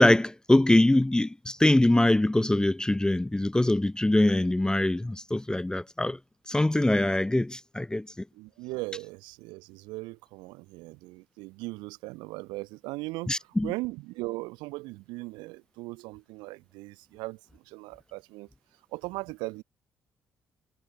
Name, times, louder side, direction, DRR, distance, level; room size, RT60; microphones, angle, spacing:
voice 1, 0.0-6.2 6.5-8.1 13.3-13.7, left 1 dB, 10° left, 0.5 m, -23 dB
voice 2, 8.3-13.3 13.6-18.5 18.9-19.6, right 23 dB, 65° right, 1.1 m, -38 dB
figure-of-eight pair, 45°, 8 cm